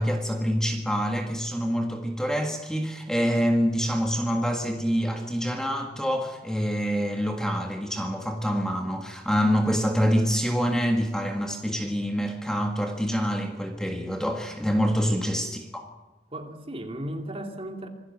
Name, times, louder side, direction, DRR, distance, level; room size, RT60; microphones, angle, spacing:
voice 1, 0.0-15.8, equal, 5° left, 3 dB, 1.7 m, -26 dB
voice 2, 15.1-15.4 16.3-17.9, right 1 dB, 35° right, 3 dB, 2.7 m, -36 dB
26.5 x 17.5 x 7.5 m, 1.2 s
head